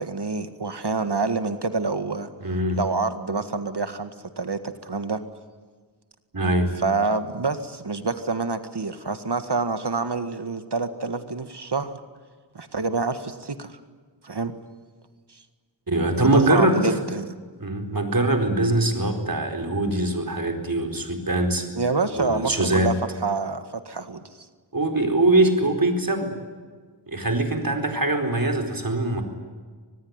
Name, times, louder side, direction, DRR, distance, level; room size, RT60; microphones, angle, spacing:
voice 1, 0.0-2.3 2.7-4.1 4.4-5.2 6.8-12.0 12.5-13.8 14.2-14.5 16.2-17.3 21.8-22.9 23.2-24.2, right 3 dB, 70° right, 10 dB, 1.9 m, -27 dB
voice 2, 2.4-2.8 6.3-6.8 15.9-17.0 17.6-21.7 22.2-23.0 24.7-26.3 27.1-29.2, right 2 dB, 50° right, 5 dB, 4.3 m, -22 dB
25.0 x 19.5 x 9.7 m, 1.5 s
wide cardioid pair, 60°, 42 cm